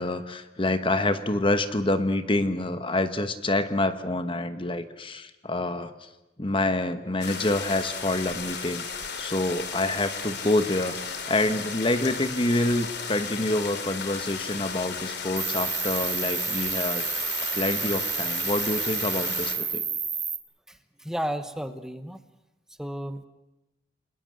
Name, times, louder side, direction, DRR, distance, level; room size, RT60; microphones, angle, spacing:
voice 1, 0.0-6.1 6.4-19.8, left 2 dB, 30° left, 10 dB, 1.2 m, -27 dB
sound 1, 7.2-19.6, left 5 dB, 60° left, 3.1 m, -35 dB
Cricket, 15.4-20.4, right 7 dB, 20° right, 1.6 m, -30 dB
voice 2, 20.7-22.2 22.7-23.3, equal, 5° right, 9 dB, 1.1 m, -33 dB
29.5 x 21.0 x 7.8 m, 0.99 s
head